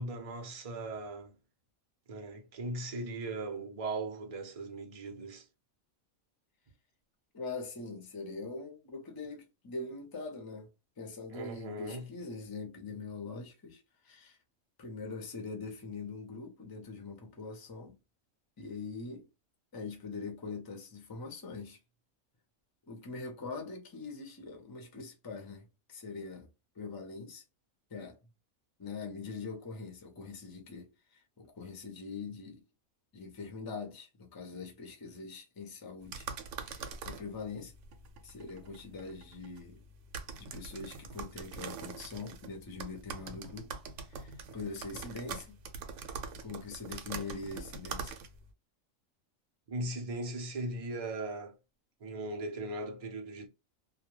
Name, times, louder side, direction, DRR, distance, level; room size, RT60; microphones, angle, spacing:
voice 1, 0.0-1.4 2.1-5.4 11.3-12.1 49.7-51.6 52.0-53.5, right 2 dB, 40° right, 0.5 m, -38 dB
voice 2, 7.3-10.7 11.0-14.4 14.8-18.0 18.6-19.3 19.7-21.8 22.9-26.5 26.8-27.4 27.9-28.2 28.8-32.6 33.1-36.3 36.6-37.7 38.2-39.8 40.4-43.7 44.0-45.6 46.4-48.1, left 4 dB, 30° left, 0.4 m, -43 dB
sound 1, 36.0-48.5, right 5 dB, 70° right, 0.8 m, -44 dB
2.2 x 2.1 x 3.0 m
omnidirectional pair, 1.4 m